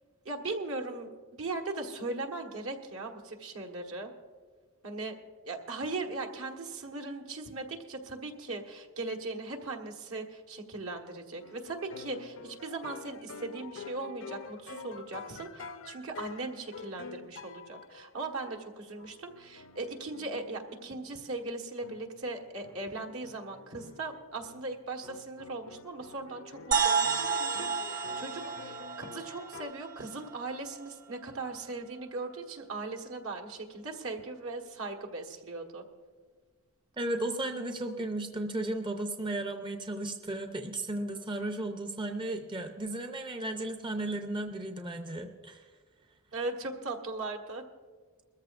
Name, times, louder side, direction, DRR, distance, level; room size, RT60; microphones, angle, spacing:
voice 1, 0.2-4.1 4.8-5.1 5.4-35.8 46.3-47.6, right 3 dB, 70° right, 3 dB, 1.5 m, -39 dB
sound 1, 11.4-21.1 21.8-24.7 25.0-29.7, left 4 dB, 65° left, 0.7 m, -48 dB
sound 2, 26.7-30.5, right 6 dB, 40° right, 1.0 m, -31 dB
voice 2, 37.0-45.6, right 1 dB, 20° right, 5 dB, 0.6 m, -35 dB
21.5 x 14.0 x 2.5 m, 1.5 s
head